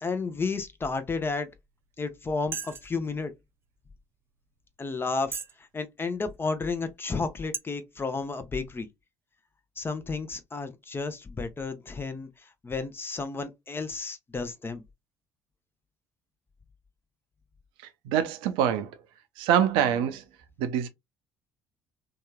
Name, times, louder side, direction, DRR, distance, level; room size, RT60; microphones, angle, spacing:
voice 1, 0.0-1.5 2.0-3.3 4.8-5.3 5.7-8.9 9.8-12.3 12.6-14.8, left 4 dB, 25° left, 0.7 m, -32 dB
sound 1, 1.7-1.9 2.5-3.0 3.7-3.8 4.4-4.5 5.3-5.6 6.2-6.3 7.0-7.1 7.5-7.6, right 5 dB, 25° right, 0.6 m, -35 dB
voice 2, 18.1-18.9 19.4-20.2 20.6-20.9, right 9 dB, 65° right, 0.5 m, -24 dB
2.8 x 2.3 x 2.2 m
hypercardioid pair, 55°, 9 cm